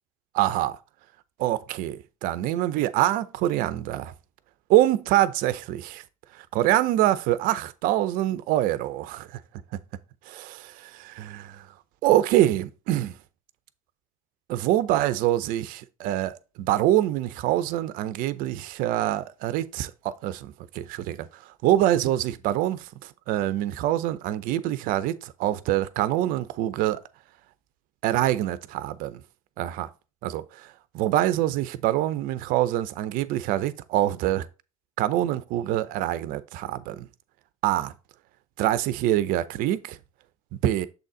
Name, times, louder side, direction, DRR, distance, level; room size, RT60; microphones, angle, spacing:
voice 1, 0.3-0.8 1.4-4.1 4.7-6.0 6.5-9.3 10.3-11.6 12.0-13.1 14.5-21.3 21.6-22.9 23.3-27.0 28.0-29.2 29.6-29.9 30.2-30.4 30.9-34.5 35.0-37.1 37.6-37.9 38.6-40.0 40.6-40.9, right 13 dB, 55° right, 0.6 m, -25 dB
7.1 x 4.0 x 3.8 m
hypercardioid pair, 80°, 17 cm